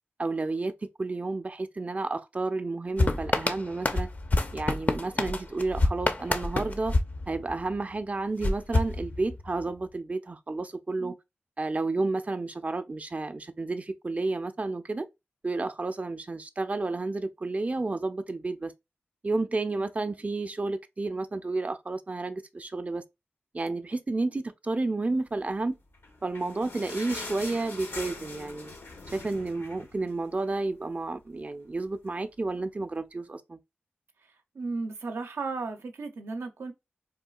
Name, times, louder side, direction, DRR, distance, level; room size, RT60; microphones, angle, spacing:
voice 1, 0.2-4.1 4.5-6.9 7.3-11.1 11.6-15.1 15.4-18.7 19.2-23.0 23.5-25.8 26.2-28.7 29.1-33.6, right 3 dB, 35° right, 0.4 m, -31 dB
sound 1, 3.0-7.8 8.4-9.6, left 2 dB, 40° left, 0.5 m, -28 dB
sound 2, 25.9-30.6 31.0-31.1 31.4-31.6 32.2-32.3, left 3 dB, 75° left, 0.8 m, -42 dB
voice 2, 34.5-36.7, right 3 dB, 90° right, 0.5 m, -34 dB
3.6 x 2.3 x 2.3 m
cardioid pair, 55°, 4 cm